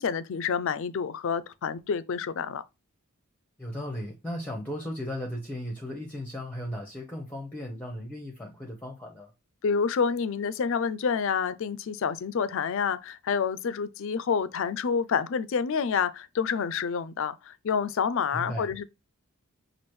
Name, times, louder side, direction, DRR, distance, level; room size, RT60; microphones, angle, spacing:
voice 1, 0.0-2.6 9.6-18.8, left 6 dB, 60° left, 0.4 m, -28 dB
voice 2, 3.6-9.3 18.3-18.7, equal, 10° left, 0.7 m, -36 dB
6.0 x 2.5 x 3.0 m
head